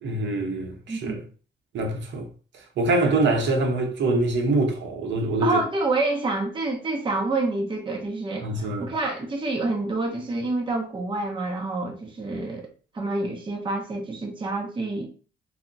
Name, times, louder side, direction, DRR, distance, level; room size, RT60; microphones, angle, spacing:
voice 1, 0.0-1.2 1.7-2.3 2.8-5.6 8.4-8.9, right 2 dB, 65° right, 0.8 m, -24 dB
voice 2, 0.9-1.2 5.4-12.7 12.9-15.1, right 2 dB, 25° right, 0.7 m, -28 dB
2.2 x 2.1 x 3.8 m
cardioid pair, 90°, 20 cm